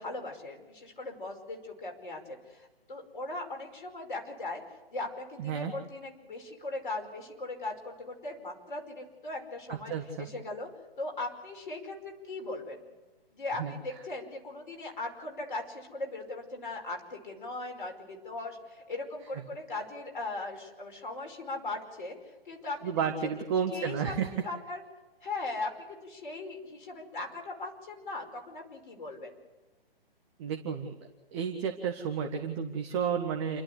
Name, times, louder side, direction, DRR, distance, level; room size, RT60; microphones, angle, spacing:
voice 1, 0.0-4.6 4.9-9.9 10.2-10.7 11.0-12.8 13.3-22.2 22.5-23.3 23.7-24.1 24.4-24.8 25.2-29.4, left 2 dB, 55° left, 3 dB, 5.4 m, -39 dB
voice 2, 5.4-5.7 9.7-10.3 13.6-13.8 19.3-19.4 22.8-24.3 30.4-30.9 31.3-33.6, right 7 dB, 30° right, 4 dB, 1.6 m, -32 dB
28.5 x 12.5 x 8.3 m, 1.2 s
figure-of-eight pair, 130°, 30 cm